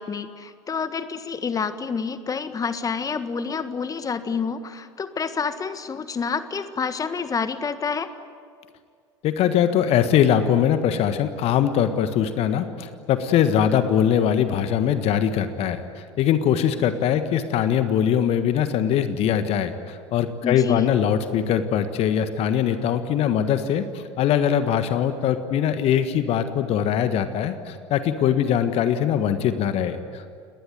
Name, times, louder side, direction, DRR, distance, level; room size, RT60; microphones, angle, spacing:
voice 1, 0.0-8.1 20.4-20.9, left 5 dB, 25° left, 12 dB, 1.6 m, -28 dB
voice 2, 9.2-30.3, left 9 dB, 45° left, 10 dB, 1.5 m, -22 dB
29.5 x 20.0 x 9.4 m, 2.1 s
figure-of-eight pair, 70°, 15 cm